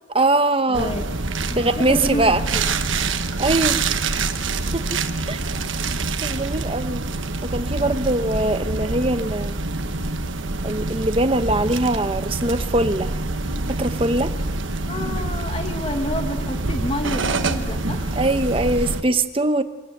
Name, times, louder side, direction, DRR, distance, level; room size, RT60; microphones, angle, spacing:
voice 1, 0.1-0.9 1.5-2.4 3.4-3.9 4.7-5.0 5.3-5.4 6.2-7.0 7.4-9.6 10.6-13.2 13.7-14.3 18.2-19.6, right 2 dB, 30° right, 10 dB, 1.0 m, -22 dB
voice 2, 0.7-1.0 1.5-2.6 7.8-7.9 14.9-18.2, equal, 30° left, 4 dB, 2.0 m, -29 dB
sound 1, 0.7-19.0, right 3 dB, 85° right, 1.3 m, -26 dB
25.5 x 18.0 x 7.9 m, 1.2 s
head